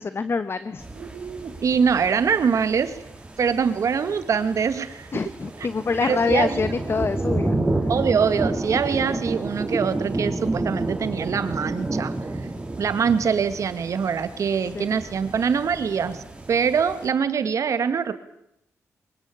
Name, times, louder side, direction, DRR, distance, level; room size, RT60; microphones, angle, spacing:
voice 1, 0.0-0.9 5.1-7.9 14.6-14.9, left 4 dB, 45° left, 13 dB, 1.1 m, -26 dB
sound 1, 0.8-17.1, right 2 dB, 20° right, 4.1 m, -30 dB
voice 2, 1.0-3.0 3.4-5.1 6.0-6.6 7.9-12.1 12.8-18.1, right 6 dB, 65° right, 11 dB, 2.0 m, -24 dB
22.5 x 20.5 x 8.5 m, 0.79 s
cardioid pair, 80°, 6 cm